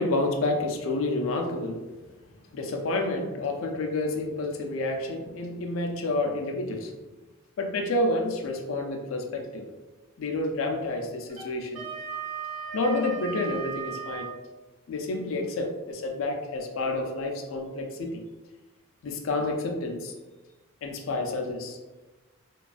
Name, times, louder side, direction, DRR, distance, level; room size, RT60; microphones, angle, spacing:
voice 1, 0.0-1.8 2.5-6.9 7.6-9.7 10.2-11.8 12.7-14.3 14.9-18.2 19.0-20.1 20.8-21.8, left 2 dB, 70° left, 2 dB, 0.4 m, -29 dB
Wind instrument woodwind instrument, 11.3-14.4, right 7 dB, 60° right, 0.8 m, -36 dB
2.4 x 2.2 x 2.3 m, 1.2 s
head